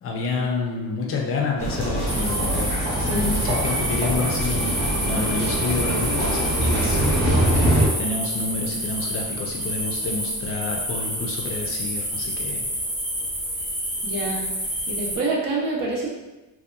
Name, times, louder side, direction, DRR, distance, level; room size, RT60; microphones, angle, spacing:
voice 1, 0.0-2.7 3.0-12.7, left 3 dB, 35° left, 0 dB, 0.4 m, -29 dB
sound 1, 1.6-7.9, right 1 dB, 85° right, 1.0 m, -23 dB
Wind instrument woodwind instrument, 1.8-7.4, left 1 dB, 90° left, 0.8 m, -39 dB
sound 2, 2.1-15.2, equal, 10° right, 0.7 m, -28 dB
voice 2, 14.0-14.4 14.9-16.1, right 2 dB, 60° right, -3 dB, 0.6 m, -26 dB
2.8 x 2.1 x 2.2 m, 1.1 s
cardioid pair, 140°, 38 cm